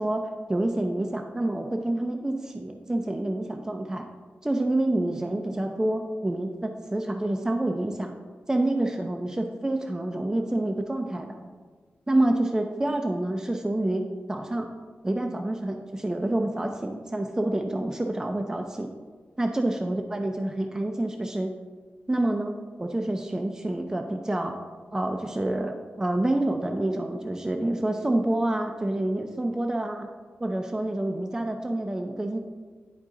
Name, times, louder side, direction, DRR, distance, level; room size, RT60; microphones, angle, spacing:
voice 1, 0.0-4.1 4.4-8.1 8.5-11.4 12.1-14.0 14.3-14.7 15.0-18.9 19.4-21.5 22.1-24.5 24.9-30.1 30.4-32.4, right 1 dB, 15° right, 3 dB, 0.4 m, -27 dB
10.0 x 3.7 x 3.8 m, 1.4 s
wide cardioid pair, 115°, 4 cm